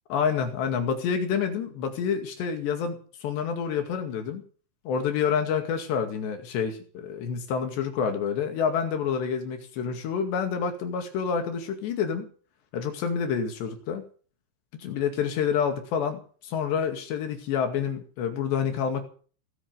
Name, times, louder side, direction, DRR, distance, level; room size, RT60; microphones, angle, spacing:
voice 1, 0.1-4.4 4.9-12.3 12.7-14.0 14.8-19.0, left 7 dB, 65° left, 6 dB, 4.2 m, -28 dB
18.5 x 9.8 x 8.0 m, 0.42 s
omnidirectional pair, 5.4 m